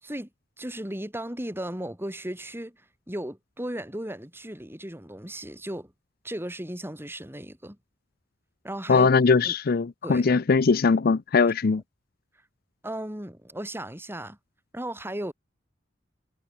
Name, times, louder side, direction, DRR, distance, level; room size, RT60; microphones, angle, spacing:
voice 1, 0.6-2.8 3.1-5.9 6.2-7.8 8.6-9.5 10.0-10.3 12.8-14.4 14.7-15.3, right 1 dB, 10° right, 4.7 m, -36 dB
voice 2, 8.9-11.8, left 4 dB, 55° left, 0.5 m, -21 dB
head